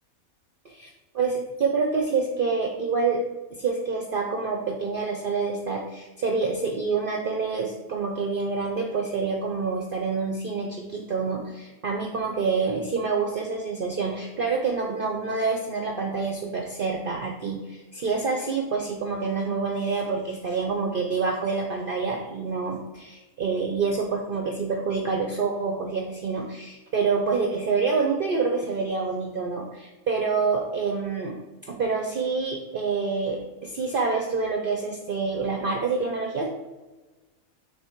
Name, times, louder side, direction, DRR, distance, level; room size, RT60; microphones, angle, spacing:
voice 1, 0.6-3.2 3.5-31.4 31.7-36.5, right 4 dB, 55° right, 1 dB, 0.6 m, -27 dB
6.8 x 3.2 x 4.5 m, 1.2 s
omnidirectional pair, 1.5 m